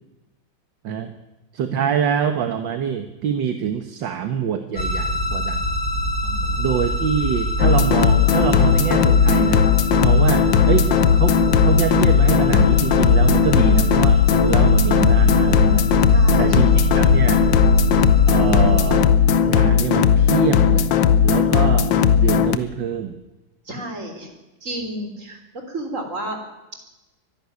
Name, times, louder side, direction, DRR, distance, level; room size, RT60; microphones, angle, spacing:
voice 1, 1.5-5.6 6.6-9.7 10.0-15.9 16.4-17.4 18.3-19.1 19.4-20.9 21.2-23.2, right 8 dB, 65° right, 8 dB, 1.8 m, -25 dB
sound 1, 4.8-19.0, equal, 55° left, 4.6 m, -23 dB
voice 2, 6.2-6.7 16.1-16.6 23.7-24.3 24.6-26.4, right 1 dB, 35° right, 4 dB, 4.1 m, -32 dB
sound 2, 7.6-22.6, left 8 dB, 70° left, 1.6 m, -17 dB
23.5 x 11.5 x 9.7 m, 1.0 s
omnidirectional pair, 2.2 m